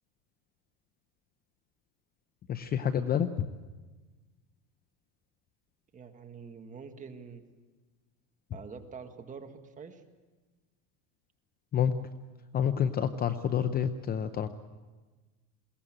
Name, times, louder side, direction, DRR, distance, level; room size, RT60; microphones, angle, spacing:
voice 1, 2.5-3.5 11.7-11.9 12.5-14.5, left 8 dB, 25° left, 11 dB, 0.7 m, -28 dB
voice 2, 5.9-7.5 8.5-10.0, right 5 dB, 20° right, 6 dB, 1.7 m, -46 dB
21.5 x 17.5 x 8.8 m, 1.3 s
supercardioid pair, 140°, 39 cm